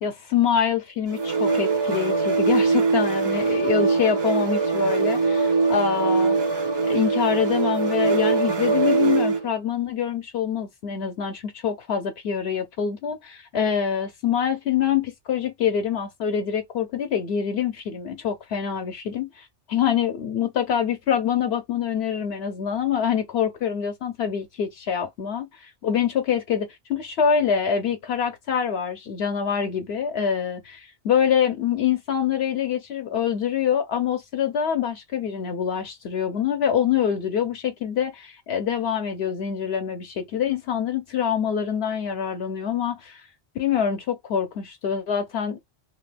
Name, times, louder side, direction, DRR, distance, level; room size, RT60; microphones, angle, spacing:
voice 1, 0.0-6.4 6.9-43.2 43.6-45.6, left 8 dB, 70° left, 0.8 m, -25 dB
sound 1, 1.1-9.5, right 4 dB, 35° right, 0.4 m, -22 dB
2.8 x 2.1 x 3.2 m
omnidirectional pair, 1.1 m